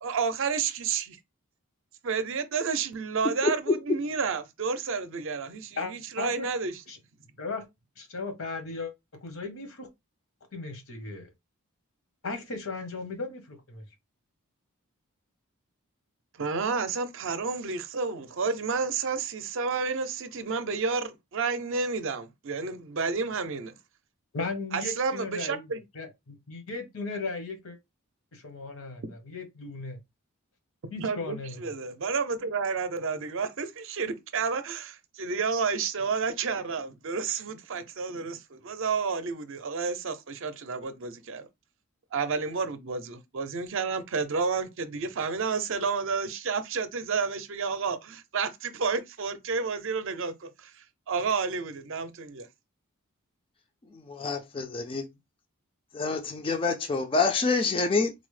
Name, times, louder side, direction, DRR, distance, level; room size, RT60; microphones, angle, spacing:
voice 1, 0.0-1.2 2.0-6.8 16.4-23.7 24.7-25.8 31.0-41.5 42.1-52.5, right 5 dB, 60° right, 0.5 m, -30 dB
voice 2, 5.8-6.5 6.9-7.0 7.4-7.6 8.0-8.9 9.2-9.9 10.5-11.3 12.2-13.8 24.3-27.8 28.3-30.0 30.9-31.6, left 3 dB, 70° left, 0.9 m, -36 dB
voice 3, 54.1-55.0 55.9-58.1, left 4 dB, 25° left, 0.3 m, -27 dB
3.9 x 2.0 x 3.2 m
head